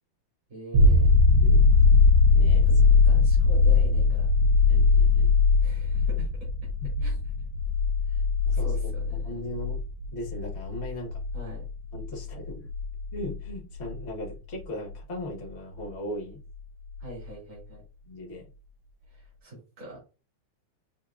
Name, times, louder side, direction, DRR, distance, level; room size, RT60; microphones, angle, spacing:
voice 1, 0.5-1.1 2.7-4.3 5.6-6.3 7.0-7.1 8.1-9.2 11.3-11.6 17.0-17.8 19.1-20.0, right 2 dB, 35° right, -6 dB, 2.8 m, -43 dB
sound 1, 0.7-14.2 17.0-17.1, left 4 dB, 75° right, 1.4 m, -21 dB
voice 2, 2.3-2.7 4.7-5.3 6.8-6.9 8.5-9.8 10.1-11.2 11.9-12.7 13.1-16.4 18.1-18.5, left 1 dB, 35° left, 0 dB, 1.2 m, -38 dB
5.6 x 3.3 x 2.4 m, 0.33 s
omnidirectional pair, 2.4 m